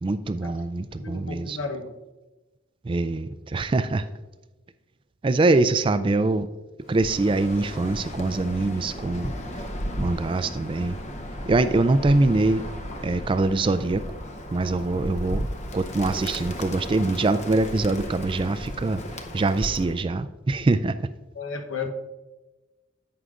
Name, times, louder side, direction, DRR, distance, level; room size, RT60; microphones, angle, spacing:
voice 1, 0.0-1.6 2.8-4.1 5.2-6.5 6.9-9.3 10.0-11.0 11.5-12.7 13.0-14.0 14.5-15.5 15.7-21.1, right 2 dB, 25° right, 13 dB, 0.3 m, -23 dB
voice 2, 0.9-1.9 21.3-21.9, left 4 dB, 80° left, 5 dB, 0.9 m, -33 dB
Bird, 6.9-20.0, equal, 35° left, 0.7 m, -35 dB
11.0 x 7.9 x 2.5 m, 1.1 s
head